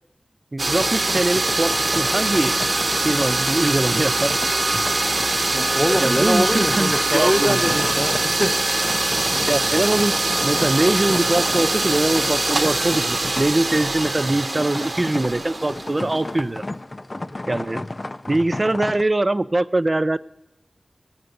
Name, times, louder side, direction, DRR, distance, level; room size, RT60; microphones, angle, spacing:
voice 1, 0.5-2.6 3.0-4.3 6.0-7.6 9.5-10.2 10.4-16.6 17.5-17.8 18.3-20.2, right 2 dB, 35° right, 16 dB, 0.4 m, -22 dB
sound 1, 0.6-16.3, right 2 dB, 60° right, 0.9 m, -23 dB
sound 2, 0.8-19.0, left 2 dB, 40° left, 0.4 m, -34 dB
voice 2, 5.5-8.5, equal, 5° right, 6 dB, 0.9 m, -23 dB
17.5 x 8.0 x 5.1 m, 0.91 s
wide cardioid pair, 80°, 0 cm